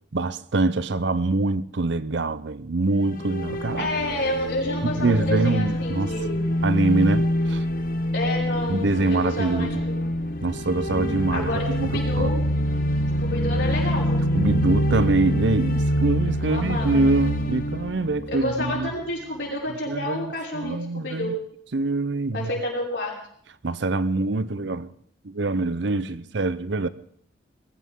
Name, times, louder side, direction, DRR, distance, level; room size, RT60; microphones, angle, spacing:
voice 1, 0.1-3.9 4.8-6.1 6.6-7.6 8.7-9.8 10.4-12.3 14.3-18.9 19.9-21.3 21.7-22.5 23.6-24.9 25.2-26.9, right 3 dB, 70° right, 0.7 m, -24 dB
sound 1, 2.9-19.0, equal, 45° left, 1.3 m, -26 dB
voice 2, 3.8-6.5 8.1-10.0 11.3-12.4 13.2-14.3 16.4-17.0 18.3-21.4 22.3-23.2, left 1 dB, 65° left, 5.8 m, -29 dB
sound 2, 11.0-14.9, left 3 dB, ahead, 4.2 m, -35 dB
21.0 x 16.0 x 3.7 m
head